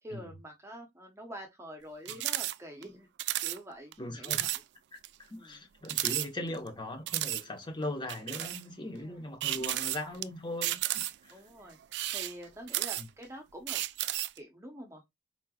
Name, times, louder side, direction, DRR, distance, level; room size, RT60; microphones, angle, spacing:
voice 1, 0.0-3.1 3.4-4.6 5.4-5.6 8.9-9.9 11.3-13.8 14.4-15.0, equal, 15° right, 0.8 m, -47 dB
sound 1, 2.1-2.6 2.8-2.9 3.2-3.6 3.9-4.0 4.2-4.6 5.0-5.1 5.9-6.7 7.1-7.4 8.1-8.6 9.4-10.2 10.6-11.3 11.8-13.2 13.7-14.4, right 15 dB, 70° right, 0.3 m, -32 dB
voice 2, 4.0-4.4 5.3-11.4 13.0-13.1, left 1 dB, 25° left, 1.3 m, -39 dB
4.5 x 3.2 x 2.4 m
head